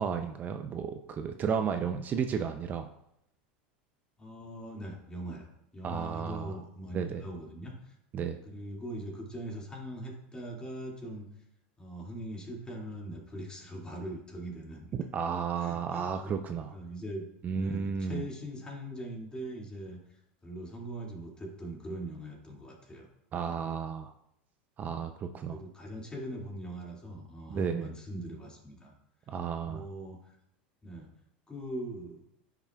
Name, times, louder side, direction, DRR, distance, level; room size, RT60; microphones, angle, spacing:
voice 1, 0.0-2.9 5.8-6.6 6.9-7.2 8.1-8.4 14.9-16.7 17.4-18.2 23.3-24.1 24.8-25.6 27.5-27.9 29.3-29.9, right 6 dB, 35° right, 7 dB, 0.5 m, -33 dB
voice 2, 4.2-5.5 5.7-7.9 8.4-11.3 11.8-14.9 15.6-17.2 17.5-20.0 20.4-23.1 25.5-28.9 29.6-30.3 30.8-31.1 31.5-32.2, right 1 dB, 15° left, -1 dB, 2.2 m, -41 dB
10.0 x 5.8 x 2.3 m, 0.77 s
supercardioid pair, 105°, 5 cm